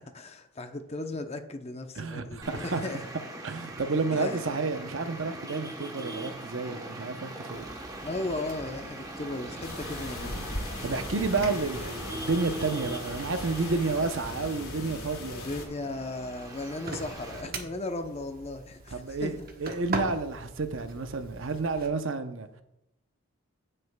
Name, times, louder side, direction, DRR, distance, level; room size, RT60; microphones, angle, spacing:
voice 1, 0.1-3.0 4.1-4.4 8.0-10.5 15.3-19.3, left 2 dB, 30° left, 0.6 m, -36 dB
voice 2, 1.9-2.8 3.4-7.6 10.8-15.5 18.9-22.5, right 3 dB, 60° right, 0.7 m, -30 dB
Traffic noise roadway noise, 2.4-17.4, right 1 dB, 15° right, 0.9 m, -41 dB
sound 1, 7.5-21.9, right 3 dB, 40° right, 1.0 m, -43 dB
sound 2, 9.6-15.7, left 2 dB, 80° left, 2.5 m, -38 dB
16.0 x 6.7 x 2.2 m
head